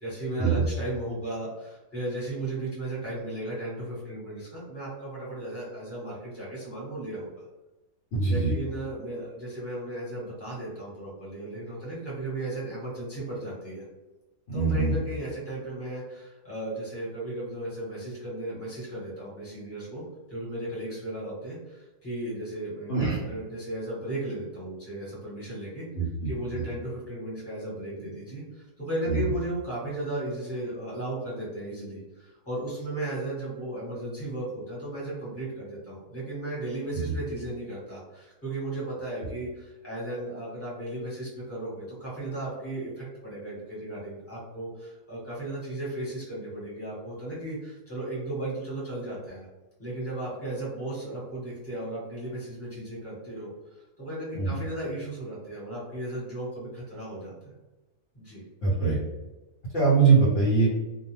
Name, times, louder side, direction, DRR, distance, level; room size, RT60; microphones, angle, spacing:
voice 1, 0.0-7.4 8.3-13.9 14.5-20.0 20.3-49.5 49.8-57.5 58.1-58.4, right 1 dB, 10° left, -7 dB, 1.0 m, -35 dB
voice 2, 8.1-8.5 14.5-14.9 22.9-23.2 25.9-26.6 29.1-29.2 54.3-54.6 58.6-59.0 59.7-60.7, right 4 dB, 60° left, -8 dB, 0.9 m, -23 dB
2.5 x 2.2 x 3.1 m, 1.1 s
omnidirectional pair, 1.6 m